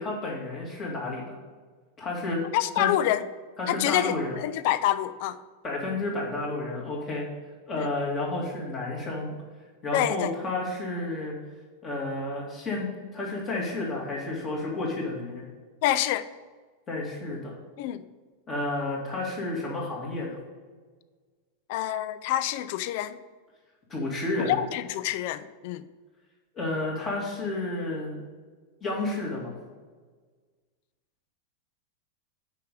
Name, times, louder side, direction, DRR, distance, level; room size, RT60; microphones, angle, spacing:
voice 1, 0.0-1.4 2.0-2.4 2.8-2.9 3.6-4.3 5.6-7.3 7.7-9.3 9.8-11.3 11.8-15.4 16.9-17.5 18.5-20.4 23.9-24.6 26.5-28.2 28.8-29.5, left 2 dB, 25° left, 2.5 m, -31 dB
voice 2, 2.5-3.2 3.7-5.4 7.8-7.9 9.9-10.3 15.8-16.3 17.8-18.0 21.7-23.2 24.4-25.8, left 13 dB, 50° left, 0.4 m, -27 dB
6.5 x 5.2 x 6.8 m
figure-of-eight pair, 90°, 0 cm